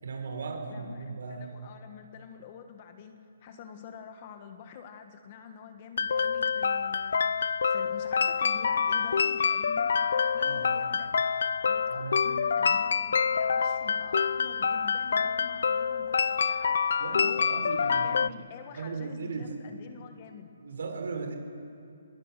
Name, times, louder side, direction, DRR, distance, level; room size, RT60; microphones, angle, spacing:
voice 1, 0.0-1.5 10.4-10.8 11.9-12.2 17.0-18.2 18.7-19.5 20.6-21.4, right 4 dB, 60° right, 4 dB, 5.1 m, -37 dB
voice 2, 0.7-11.2 11.7-20.5, left 6 dB, 25° left, 7 dB, 1.4 m, -47 dB
sound 1, 6.0-18.3, left 6 dB, 55° left, 0.5 m, -27 dB
25.0 x 21.0 x 7.6 m, 2.7 s
hypercardioid pair, 175°, 0 cm